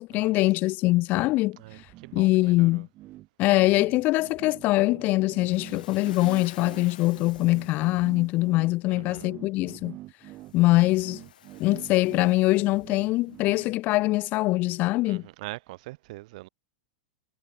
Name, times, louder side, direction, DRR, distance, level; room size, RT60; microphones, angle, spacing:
voice 1, 0.0-1.6 2.1-2.9 3.4-10.0 10.5-11.2 11.6-15.2, left 20 dB, 40° left, 0.6 m, -23 dB
sound 1, 1.6-14.2, right 16 dB, 40° right, 1.4 m, -46 dB
voice 2, 1.6-2.8 8.9-9.3 15.1-16.5, right 20 dB, 60° right, 0.9 m, -43 dB
Waves surf, 5.3-8.5 10.3-13.4, left 10 dB, 85° left, 1.4 m, -51 dB
hypercardioid pair, 125°, 4 cm